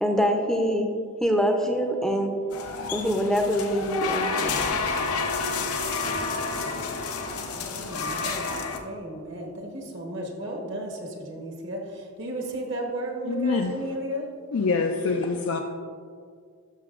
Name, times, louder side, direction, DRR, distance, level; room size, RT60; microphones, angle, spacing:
voice 1, 0.0-0.9 1.2-2.3 2.9-4.6, equal, ahead, 3 dB, 0.6 m, -24 dB
sound 1, 2.5-8.8, left 4 dB, 85° left, 0.8 m, -29 dB
voice 2, 7.5-14.2, right 1 dB, 55° right, 0 dB, 1.2 m, -34 dB
voice 3, 13.3-13.7 14.5-15.6, left 4 dB, 70° left, 3 dB, 0.4 m, -25 dB
12.5 x 6.0 x 2.5 m, 2.1 s
head